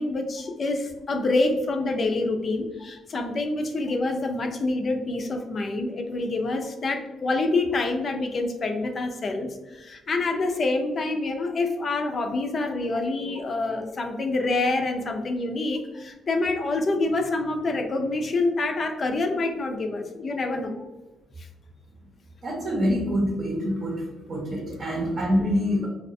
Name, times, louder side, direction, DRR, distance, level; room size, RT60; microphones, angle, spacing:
voice 1, 0.0-20.7 21.4-21.5, left 2 dB, 45° left, 4 dB, 0.3 m, -27 dB
voice 2, 22.4-25.9, equal, 45° right, -2 dB, 0.7 m, -26 dB
2.3 x 2.2 x 2.5 m, 1.1 s
cardioid pair, 90°, 0 cm